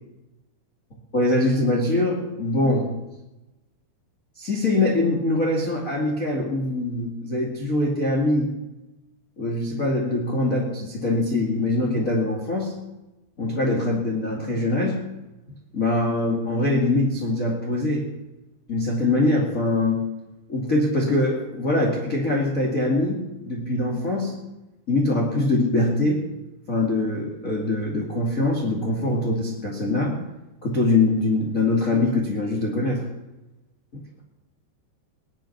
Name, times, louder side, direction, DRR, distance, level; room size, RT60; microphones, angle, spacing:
voice 1, 1.1-2.9 4.4-8.5 9.4-12.7 13.4-14.9 15.7-18.1 18.7-20.0 20.5-24.3 24.9-26.2 26.7-30.2 30.6-33.0 33.9-34.2, left 2 dB, 30° left, -3 dB, 1.6 m, -23 dB
19.5 x 11.5 x 6.0 m, 1.0 s
omnidirectional pair, 5.2 m